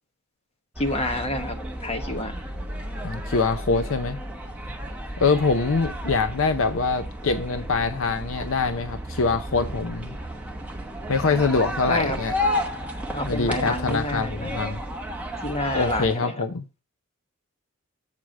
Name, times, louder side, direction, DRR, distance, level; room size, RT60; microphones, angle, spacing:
sound 1, 0.7-16.2, equal, 5° right, 0.9 m, -32 dB
voice 1, 0.8-2.4 11.9-12.2 13.1-14.5 15.4-16.4, left 1 dB, 30° left, 1.3 m, -28 dB
voice 2, 3.0-4.2 5.2-10.2 11.1-12.3 13.2-14.8 15.7-16.6, left 4 dB, 65° left, 0.6 m, -24 dB
7.5 x 4.8 x 6.3 m
head